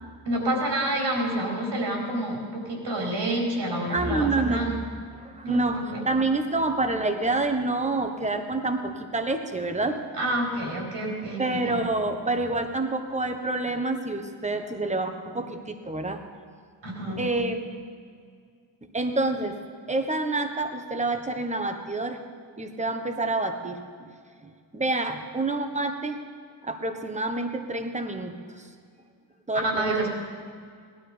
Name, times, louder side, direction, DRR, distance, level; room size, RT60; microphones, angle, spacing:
voice 1, 0.2-4.8 5.4-6.0 10.2-11.8 16.8-17.3 29.5-30.1, right 1 dB, 65° right, -1 dB, 4.5 m, -28 dB
voice 2, 3.9-4.7 5.2-10.0 11.4-16.2 17.2-17.7 18.9-19.6 19.9-22.2 22.6-24.1 24.7-26.2 26.6-28.7 29.5-30.1, right 2 dB, 15° right, 6 dB, 1.5 m, -28 dB
17.0 x 12.0 x 5.2 m, 2.1 s
cardioid pair, 75°, 46 cm